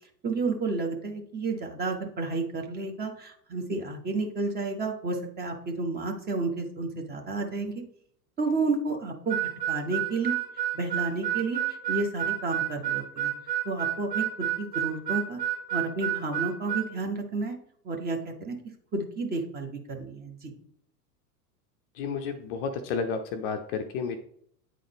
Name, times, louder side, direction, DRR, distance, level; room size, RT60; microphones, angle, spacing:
voice 1, 0.2-7.8 8.4-9.4 9.7-10.3 10.7-13.3 13.6-15.4 15.7-17.6 17.8-18.6 18.9-20.5, right 3 dB, 20° right, 3 dB, 1.1 m, -31 dB
Harmonica, 9.3-16.9, right 12 dB, 75° right, 1.3 m, -30 dB
voice 2, 22.0-24.2, left 5 dB, 35° left, 7 dB, 0.6 m, -31 dB
8.8 x 3.8 x 3.5 m, 0.65 s
figure-of-eight pair, 85°, 48 cm